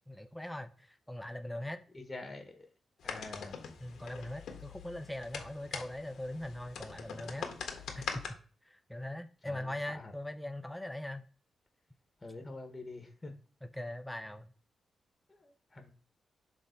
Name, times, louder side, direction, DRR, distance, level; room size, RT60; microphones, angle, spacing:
voice 1, 0.1-1.8 3.8-8.4 8.6-11.3 13.6-14.5, left 1 dB, 5° left, 0.7 m, -41 dB
voice 2, 1.9-2.6 3.0-3.6 9.4-10.1 12.2-13.3 15.3-15.9, left 2 dB, 20° left, 1.2 m, -46 dB
sound 1, 3.0-8.3, left 6 dB, 85° left, 1.3 m, -43 dB
6.6 x 3.6 x 5.1 m
cardioid pair, 105°, 0 cm